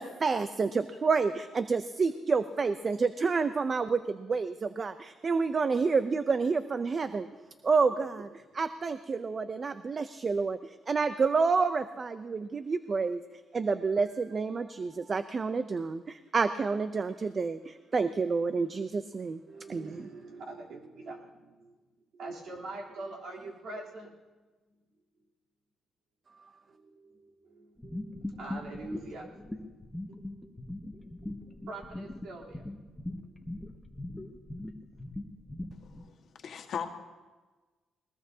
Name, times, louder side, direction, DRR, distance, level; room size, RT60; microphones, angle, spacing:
voice 1, 0.0-7.3 7.6-8.3 8.5-13.2 13.5-19.4 19.7-20.1 26.4-26.5, right 4 dB, 40° right, 11 dB, 0.6 m, -29 dB
voice 2, 19.5-21.7 22.1-24.2 26.7-29.3 30.1-30.2 30.5-30.6 31.0-32.6 33.2-33.3, right 2 dB, 70° right, -3 dB, 3.4 m, -44 dB
sound 1, 27.8-36.1, left 1 dB, 10° left, 1.5 m, -40 dB
voice 3, 35.8-36.9, left 7 dB, 60° left, 3 dB, 1.6 m, -39 dB
20.5 x 20.0 x 2.8 m, 1.3 s
cardioid pair, 90°, 0 cm